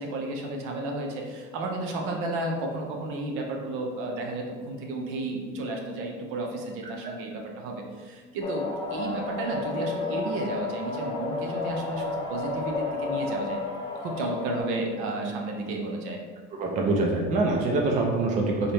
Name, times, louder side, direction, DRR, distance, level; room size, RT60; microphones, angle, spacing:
voice 1, 0.0-13.6 14.0-16.2, right 2 dB, 80° right, 1 dB, 0.8 m, -32 dB
sound 1, 8.4-14.6, left 3 dB, 25° left, 0.6 m, -32 dB
voice 2, 16.6-18.7, right 2 dB, 35° right, 0 dB, 0.5 m, -24 dB
4.0 x 2.8 x 3.4 m, 1.5 s
cardioid pair, 165°, 21 cm